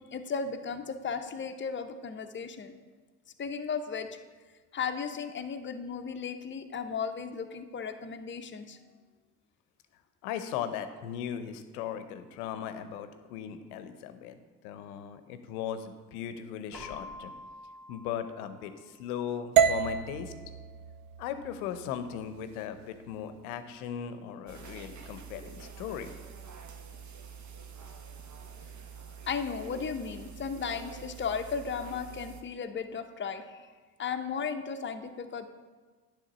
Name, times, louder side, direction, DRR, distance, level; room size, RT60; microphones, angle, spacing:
voice 1, 0.1-2.7 3.4-4.1 4.7-8.8 29.3-33.7 34.0-35.5, left 6 dB, 25° left, 7 dB, 0.7 m, -35 dB
voice 2, 10.2-17.3 17.9-20.3 21.2-26.1, left 9 dB, 75° left, 10 dB, 0.8 m, -38 dB
Keyboard (musical), 16.7-19.5, left 2 dB, ahead, 2.0 m, -48 dB
sound 1, 19.6-23.7, right 8 dB, 65° right, 0.6 m, -30 dB
sound 2, 24.5-32.4, right 6 dB, 40° right, 1.0 m, -46 dB
10.0 x 3.6 x 6.0 m, 1.4 s
hypercardioid pair, 55°, 44 cm